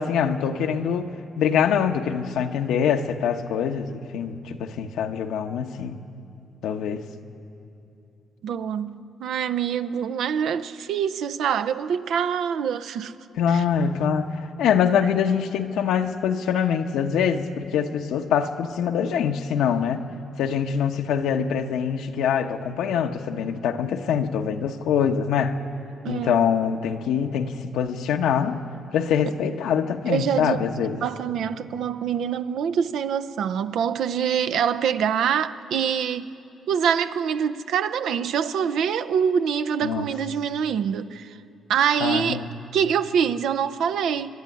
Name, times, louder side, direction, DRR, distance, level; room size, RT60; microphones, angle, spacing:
voice 1, 0.0-6.0 6.6-7.1 13.4-20.0 20.4-25.6 26.1-28.6 28.9-31.0 39.8-40.1 42.0-42.5, left 7 dB, 85° left, 1.1 m, -24 dB
voice 2, 8.4-13.1 13.5-13.6 26.0-26.5 30.1-30.7 31.0-36.3 36.7-41.4 41.7-42.4 42.7-44.3, right 8 dB, 75° right, 0.7 m, -25 dB
26.5 x 11.5 x 9.9 m
cardioid pair, 90°, 0 cm